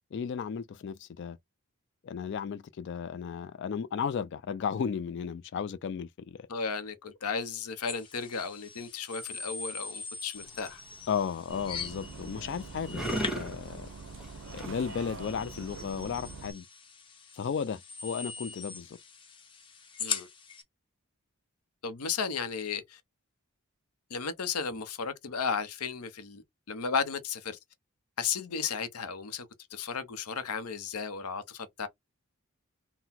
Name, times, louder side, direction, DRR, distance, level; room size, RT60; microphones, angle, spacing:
voice 1, 0.1-1.4 2.0-6.5 11.1-13.0 13.3-13.9 14.5-16.7 17.3-19.0, left 7 dB, 55° left, 0.3 m, -34 dB
voice 2, 6.5-10.8 20.0-20.3 21.8-23.0 24.1-27.6 28.2-29.5 29.7-31.9, left 5 dB, 90° left, 0.7 m, -34 dB
sound 1, 7.9-20.6, left 5 dB, 25° left, 0.7 m, -42 dB
sound 2, 10.3-16.4, equal, ahead, 1.0 m, -40 dB
Bus, 11.5-16.5, right 4 dB, 60° right, 0.6 m, -44 dB
3.8 x 2.1 x 4.2 m
head